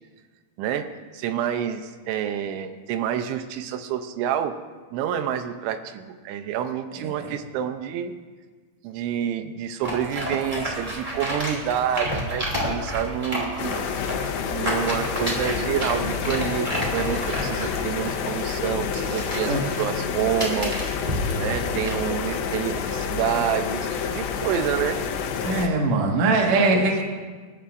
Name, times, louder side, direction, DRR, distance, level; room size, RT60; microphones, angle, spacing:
voice 1, 0.6-4.6 4.9-8.1 8.8-13.8 14.5-20.8 21.4-25.0 26.5-26.9, right 9 dB, 80° right, 8 dB, 3.0 m, -28 dB
sound 1, 9.8-22.1, equal, 15° right, 2.3 m, -31 dB
sound 2, 13.6-25.7, left 6 dB, 80° left, 3.0 m, -28 dB
voice 2, 25.4-27.0, right 3 dB, 55° right, 0 dB, 2.1 m, -21 dB
27.5 x 12.5 x 2.6 m, 1.4 s
omnidirectional pair, 5.4 m